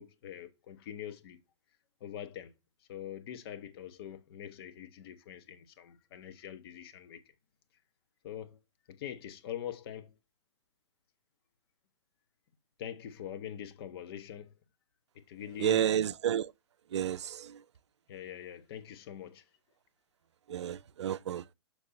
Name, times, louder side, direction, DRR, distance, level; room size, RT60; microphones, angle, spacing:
voice 1, 0.0-1.4 2.0-2.5 2.9-7.2 8.2-8.6 8.9-10.1 12.8-14.6 15.1-15.9 18.1-19.4, left 10 dB, 55° left, 1.2 m, -44 dB
voice 2, 15.6-16.5 16.9-17.6 20.5-21.5, right 10 dB, 70° right, 0.5 m, -31 dB
6.6 x 5.5 x 4.2 m
hypercardioid pair, 110°, 15 cm